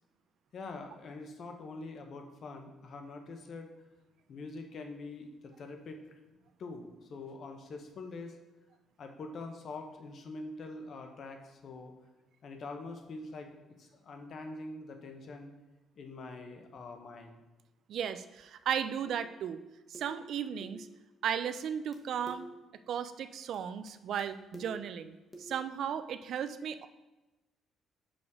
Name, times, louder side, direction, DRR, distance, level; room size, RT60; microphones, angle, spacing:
voice 1, 0.5-3.7 4.3-6.2 6.6-8.4 9.0-11.9 12.4-13.5 13.8-15.5 15.9-17.4, left 3 dB, 45° left, 4 dB, 0.8 m, -44 dB
voice 2, 17.9-19.6 19.9-20.9 21.2-22.5 22.9-26.9, right 8 dB, 55° right, 12 dB, 0.3 m, -35 dB
sound 1, 19.0-19.3 19.9-20.2 20.6-20.9 21.6-21.7 21.9-22.0 22.3-22.6 23.5-23.6 23.9-24.0 24.2-24.3 24.5-24.9 25.3-25.6, right 1 dB, 10° left, 0.9 m, -48 dB
6.4 x 5.0 x 3.5 m, 1.1 s
cardioid pair, 165°, 0 cm